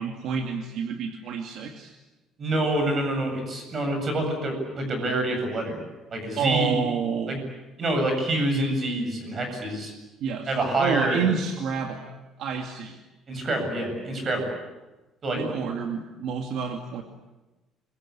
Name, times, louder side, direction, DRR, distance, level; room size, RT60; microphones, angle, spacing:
voice 1, 0.0-2.0 6.4-7.4 10.2-12.1 12.4-13.0 15.4-17.0, right 6 dB, 60° right, 3 dB, 2.4 m, -29 dB
voice 2, 2.4-5.8 6.1-6.7 7.3-7.4 7.8-9.9 10.5-11.2 13.3-14.5 15.2-15.4, right 1 dB, 30° right, 5 dB, 7.8 m, -26 dB
28.5 x 24.0 x 8.5 m, 1.1 s
cardioid pair, 170°, 0 cm